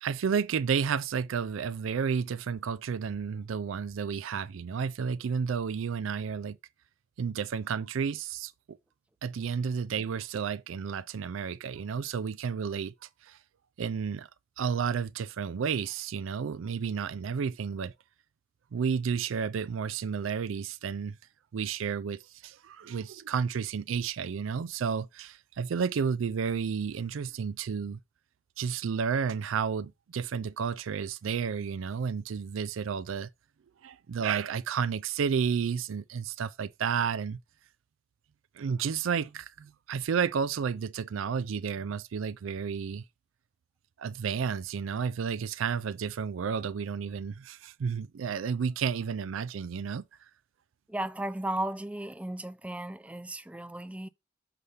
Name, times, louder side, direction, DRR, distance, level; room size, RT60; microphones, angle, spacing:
voice 1, 0.0-6.6 7.2-8.8 9.2-12.9 13.2-13.4 13.8-14.3 14.6-17.9 18.7-21.2 21.5-28.0 28.6-33.3 33.8-37.4 38.5-43.0 44.0-50.0, right 6 dB, 80° right, 0.4 m, -31 dB
voice 2, 50.9-54.1, right 1 dB, 5° right, 0.4 m, -35 dB
6.8 x 3.3 x 5.5 m
head